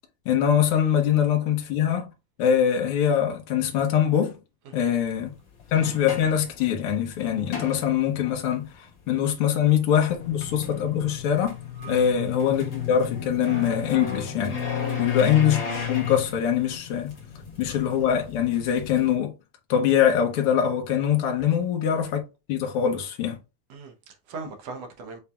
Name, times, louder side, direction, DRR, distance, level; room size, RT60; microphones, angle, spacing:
voice 1, 0.2-2.1 2.4-4.4 4.7-5.3 5.7-11.6 11.9-14.6 15.0-15.6 15.9-17.1 17.6-19.3 19.7-22.2 22.5-23.4, left 9 dB, 60° left, 1.6 m, -23 dB
sound 1, 4.9-5.0 5.6-8.4 9.8-19.1, left 8 dB, 45° left, 2.2 m, -33 dB
voice 2, 23.7-25.2, right 4 dB, 65° right, 1.8 m, -40 dB
7.0 x 3.2 x 2.3 m
omnidirectional pair, 3.6 m